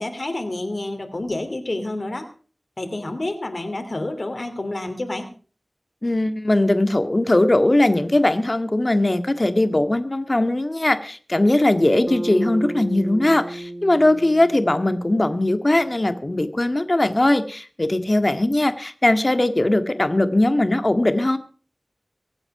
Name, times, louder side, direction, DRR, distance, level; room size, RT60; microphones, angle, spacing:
voice 1, 0.0-2.3 2.8-5.3, left 2 dB, 60° left, 6 dB, 2.8 m, -29 dB
voice 2, 6.0-21.4, left 1 dB, 45° left, 9 dB, 1.8 m, -20 dB
Bass guitar, 12.1-16.4, right 1 dB, 65° right, 2.4 m, -34 dB
24.5 x 8.9 x 4.8 m, 0.39 s
wide cardioid pair, 50°, 0 cm